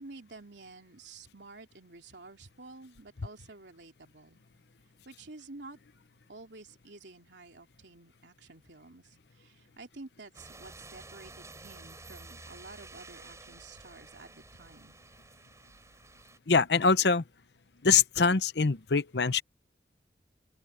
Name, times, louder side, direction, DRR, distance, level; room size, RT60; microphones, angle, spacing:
voice 1, 0.0-4.4 5.0-5.8 6.3-15.0, right 3 dB, 85° right, 3.0 m, -50 dB
sound 1, 10.3-16.4, right 3 dB, 15° right, 6.5 m, -51 dB
voice 2, 16.5-17.2 17.8-19.4, left 5 dB, 75° left, 0.8 m, -24 dB
open air
head